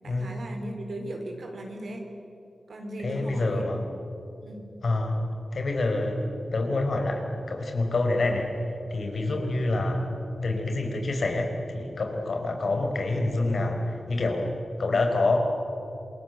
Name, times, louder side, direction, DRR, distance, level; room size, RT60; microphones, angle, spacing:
voice 1, 0.0-2.0 2.7-3.7 4.4-4.7 9.2-9.4, right 1 dB, 70° right, 3 dB, 4.1 m, -38 dB
voice 2, 3.0-3.8 4.8-8.5 8.9-10.1 10.4-14.5 14.8-15.4, left 2 dB, 65° left, 4 dB, 4.4 m, -27 dB
27.5 x 22.5 x 8.0 m, 2.9 s
cardioid pair, 70°, 0 cm